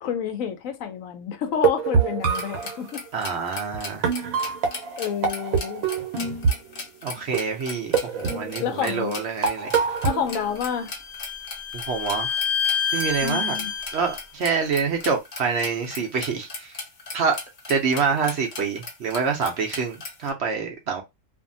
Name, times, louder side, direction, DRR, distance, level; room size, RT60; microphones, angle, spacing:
voice 1, 0.0-3.0 4.2-4.3 5.0-5.8 8.6-9.2 10.0-10.9 13.2-13.7, left 8 dB, 75° left, 0.9 m, -29 dB
sound 1, 1.5-2.8 3.7-3.8 4.0-6.8 7.3-7.6 7.9-8.9 9.4-10.5, right 6 dB, 75° right, 1.1 m, -25 dB
sound 2, 2.2-20.3, left 3 dB, 50° left, 0.4 m, -38 dB
voice 2, 3.1-4.1 7.0-9.7 11.7-12.3 12.9-13.6 13.9-16.8 17.1-17.4 17.7-21.0, right 5 dB, 60° right, 0.8 m, -26 dB
Bowed string instrument, 10.4-14.2, left 6 dB, 10° left, 1.0 m, -28 dB
2.6 x 2.5 x 2.6 m
omnidirectional pair, 1.5 m